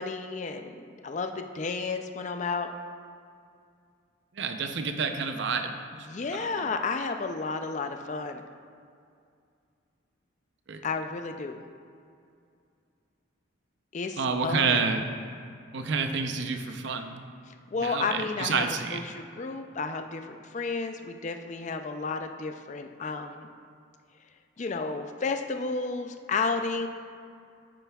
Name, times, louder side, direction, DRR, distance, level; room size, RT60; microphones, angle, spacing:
voice 1, 0.0-2.7 6.1-8.4 10.8-11.6 13.9-14.8 17.7-18.7 18.9-23.5 24.6-26.9, left 4 dB, 35° left, 6 dB, 0.3 m, -32 dB
voice 2, 4.3-6.7 10.7-10.8 14.2-15.1 15.7-17.2 17.8-19.0, right 4 dB, 60° right, 6 dB, 0.6 m, -29 dB
9.8 x 9.1 x 2.3 m, 2.3 s
head